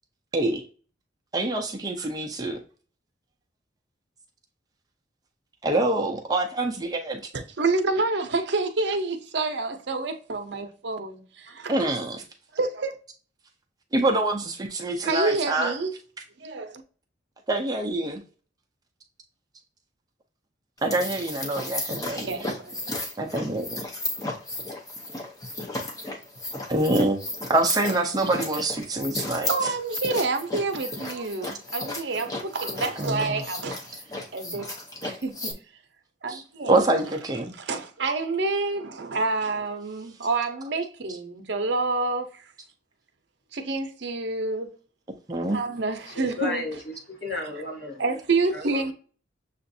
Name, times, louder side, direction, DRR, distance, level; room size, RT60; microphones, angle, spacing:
voice 1, 1.3-2.6 5.6-7.2 11.7-12.2 13.9-15.7 17.5-18.2 20.8-22.4 23.2-23.8 26.7-29.5 31.1-31.5 33.0-33.4 36.3-36.4 36.7-37.5 45.3-45.6, right 2 dB, 20° right, 0.5 m, -25 dB
voice 2, 7.3-11.7 12.5-13.0 15.0-15.9 16.4-16.8 22.2-22.9 29.5-33.9 34.3-34.7 35.0-35.5 36.2-36.8 37.6-42.4 43.5-44.7 45.5-46.6 48.0-48.9, right 3 dB, 65° right, 0.7 m, -28 dB
sound 1, 20.8-35.5, left 2 dB, 20° left, 0.7 m, -34 dB
voice 3, 46.1-48.0 48.5-48.9, left 3 dB, 50° left, 1.7 m, -33 dB
6.8 x 2.5 x 2.6 m
head